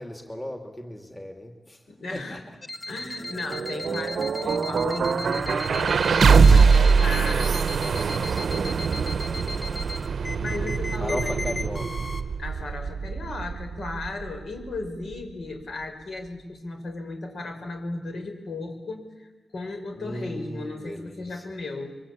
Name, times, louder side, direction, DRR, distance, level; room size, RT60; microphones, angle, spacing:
voice 1, 0.0-2.6 7.7-9.8 11.0-12.1 19.9-21.4, equal, 15° left, 3 dB, 2.8 m, -38 dB
voice 2, 1.9-2.4 2.9-7.5 10.4-11.4 12.4-21.9, left 2 dB, 65° left, 5 dB, 5.4 m, -35 dB
sound 1, 2.6-12.2, left 2 dB, 35° left, 1.8 m, -37 dB
sound 2, 3.2-15.3, right 5 dB, 60° right, 0.8 m, -23 dB
25.0 x 24.0 x 8.7 m, 1.2 s
cardioid pair, 95°, 0 cm